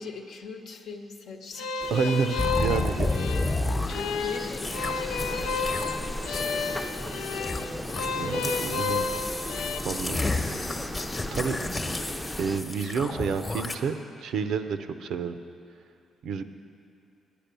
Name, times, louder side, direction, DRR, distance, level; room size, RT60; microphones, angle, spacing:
voice 1, 0.0-3.1 3.7-8.1, left 4 dB, 70° left, 4 dB, 0.9 m, -43 dB
sound 1, 1.6-9.8, left 5 dB, 90° left, 0.5 m, -31 dB
sound 2, 1.8-12.6, left 1 dB, 5° left, 0.5 m, -37 dB
voice 2, 1.9-3.1 8.2-9.1 9.8-10.2 11.3-11.6 12.4-13.9 14.2-15.3 16.2-16.5, right 6 dB, 75° right, 9 dB, 0.6 m, -29 dB
sound 3, 2.4-4.1 4.5-4.9 5.2-6.0 6.3-8.1 8.4-13.8, left 2 dB, 25° left, 1.0 m, -31 dB
10.5 x 8.4 x 6.8 m, 2.6 s
cardioid pair, 90°, 0 cm